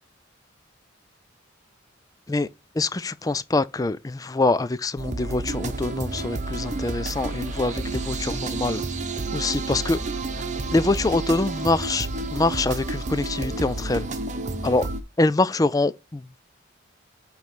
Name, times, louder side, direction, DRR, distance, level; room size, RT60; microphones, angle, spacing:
voice 1, 2.7-8.8 9.3-10.0 10.4-10.5 10.7-14.1 14.6-14.9 15.2-16.4, left 2 dB, 20° left, 0.4 m, -24 dB
sound 1, 5.0-15.0, right 2 dB, 35° right, 0.9 m, -30 dB
8.4 x 3.2 x 5.9 m
head